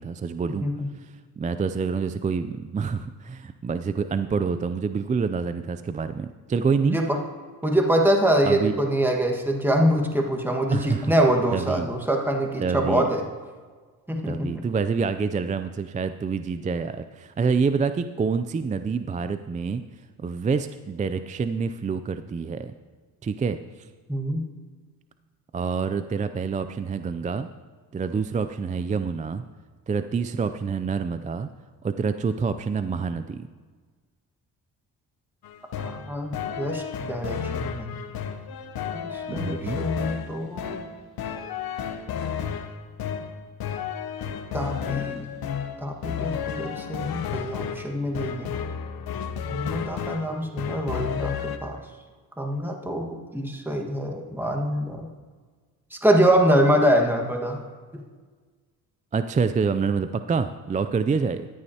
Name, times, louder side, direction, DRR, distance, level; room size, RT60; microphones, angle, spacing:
voice 1, 0.0-0.7 1.0-7.0 8.4-8.8 10.7-11.1 11.5-11.9 12.6-13.1 14.2-19.8 20.2-22.7 23.2-23.9 25.5-27.5 27.9-29.4 29.9-31.5 31.8-33.5 39.3-39.8 59.1-61.5, right 5 dB, 20° right, 11 dB, 0.4 m, -27 dB
voice 2, 6.8-7.2 7.6-13.2 14.1-14.7 24.1-24.5 35.7-37.9 38.9-40.8 44.5-45.3 45.8-48.6 49.5-51.8 52.4-55.1 55.9-57.6 57.9-58.0, right 1 dB, 5° right, 2 dB, 1.5 m, -24 dB
sound 1, 35.4-51.6, left 8 dB, 70° left, 0.8 m, -32 dB
13.5 x 9.8 x 2.8 m, 1.5 s
cardioid pair, 75°, 38 cm